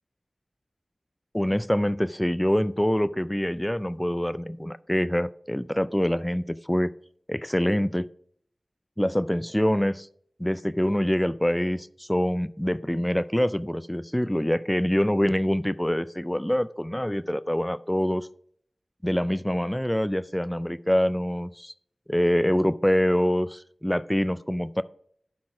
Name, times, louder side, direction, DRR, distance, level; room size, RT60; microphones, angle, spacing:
voice 1, 1.3-6.9 7.3-8.1 9.0-10.1 10.4-18.3 19.0-21.7 22.1-24.8, equal, 10° left, 15 dB, 0.3 m, -25 dB
12.0 x 4.3 x 4.8 m, 0.63 s
wide cardioid pair, 45°, 0 cm